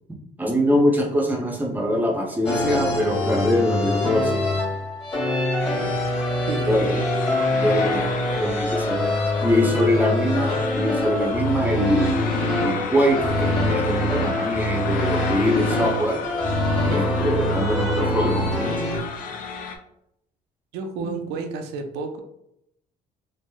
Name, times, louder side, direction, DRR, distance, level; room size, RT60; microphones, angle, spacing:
voice 1, 0.4-4.5 6.7-7.0 7.6-9.0 9.4-16.2 16.8-18.8 21.0-21.4, equal, 10° right, 0 dB, 0.6 m, -23 dB
sound 1, 2.4-19.0, left 1 dB, 35° left, 1.4 m, -24 dB
sound 2, 5.6-19.8, left 5 dB, 55° left, 0.4 m, -33 dB
voice 2, 6.5-7.1 9.8-10.2 20.7-22.2, right 4 dB, 85° right, 6 dB, 0.5 m, -32 dB
3.0 x 2.5 x 2.2 m, 0.78 s
cardioid pair, 110°, 17 cm